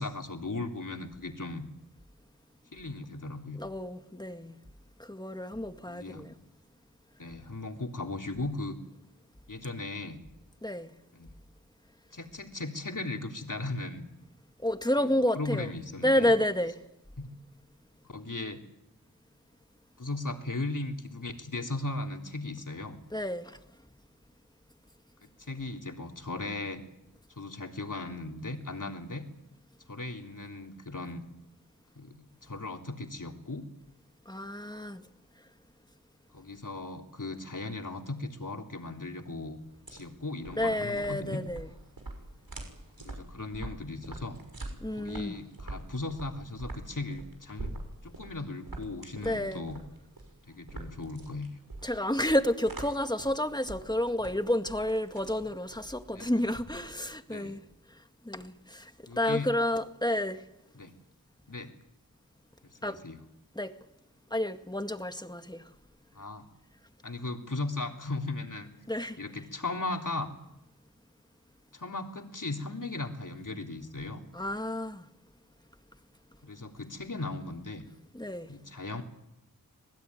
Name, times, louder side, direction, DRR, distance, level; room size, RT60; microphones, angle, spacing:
voice 1, 0.0-1.6 2.7-3.6 5.9-6.2 7.2-8.8 9.5-10.2 11.1-11.3 12.1-14.0 15.0-16.3 17.2-17.4 18.0-18.6 20.0-23.0 25.4-26.8 27.3-29.3 29.9-31.2 31.9-33.7 36.3-39.6 39.9-41.4 43.0-44.4 44.9-47.7 48.0-49.8 50.5-51.5 56.1-56.5 57.3-57.6 59.1-59.5 60.7-60.9 61.5-61.7 62.6-63.2 66.1-66.5 67.0-68.7 69.2-70.3 71.7-74.2 76.4-77.8 78.5-79.0, left 2 dB, 60° left, 3.4 m, -37 dB
voice 2, 3.6-4.6 5.0-6.4 10.6-10.9 14.6-15.7 16.0-16.8 23.1-23.6 34.3-35.0 40.6-41.7 44.8-45.4 49.2-49.6 51.8-57.6 58.2-60.4 62.8-63.0 63.6-63.7 64.3-65.7 68.9-69.2 74.3-75.1 78.1-78.5, left 1 dB, 10° left, 2.0 m, -30 dB
sound 1, 39.6-57.1, right 2 dB, 80° right, 6.2 m, -45 dB
26.0 x 20.5 x 9.7 m
wide cardioid pair, 55°, 35 cm